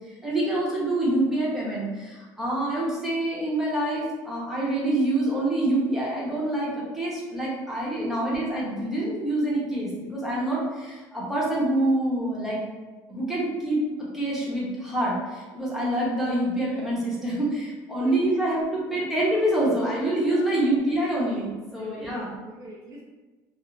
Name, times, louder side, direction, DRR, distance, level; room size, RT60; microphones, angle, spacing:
voice 1, 0.2-12.6 13.1-13.8 14.1-22.3, right 1 dB, 5° right, -6 dB, 0.9 m, -26 dB
voice 2, 17.9-18.3 18.7-19.1 20.3-20.7 21.8-23.0, equal, 40° right, -4 dB, 0.4 m, -44 dB
2.4 x 2.0 x 3.2 m, 1.2 s
cardioid pair, 125°, 8 cm